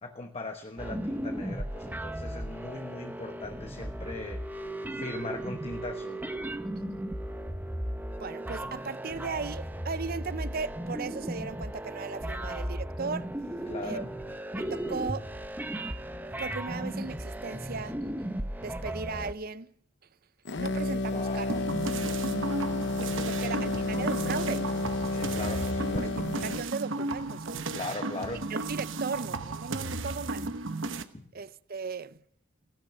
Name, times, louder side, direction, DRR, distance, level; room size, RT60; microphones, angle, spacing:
voice 1, 0.0-4.4 4.9-6.2 13.7-14.1 21.1-21.6 23.4-23.5 25.1-26.3 27.7-28.4 31.1-31.2, left 2 dB, 30° left, 1.1 m, -39 dB
sound 1, 0.8-19.3, right 1 dB, 10° right, 0.8 m, -36 dB
voice 2, 8.2-13.3 13.8-14.1 14.5-15.3 16.4-18.0 18.6-19.7 20.6-21.5 23.2-24.7 26.0-26.1 26.4-27.8 28.5-30.5 31.3-32.2, right 4 dB, 45° right, 0.6 m, -36 dB
sound 2, 20.5-26.7, left 2 dB, 55° left, 0.8 m, -31 dB
sound 3, 21.5-31.0, right 3 dB, 65° right, 1.0 m, -34 dB
17.0 x 12.0 x 6.8 m
head